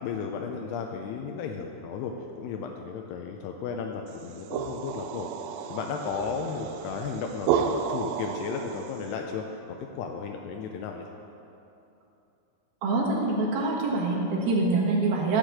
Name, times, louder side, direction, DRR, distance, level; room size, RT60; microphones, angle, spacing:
voice 1, 0.0-2.1 2.4-5.3 5.7-11.1, left 6 dB, 85° left, 2 dB, 2.6 m, -34 dB
sound 1, 4.1-9.1, right 7 dB, 85° right, 2.1 m, -32 dB
voice 2, 12.8-15.4, right 3 dB, 70° right, -2 dB, 3.2 m, -25 dB
13.5 x 5.0 x 7.6 m, 2.8 s
omnidirectional pair, 4.7 m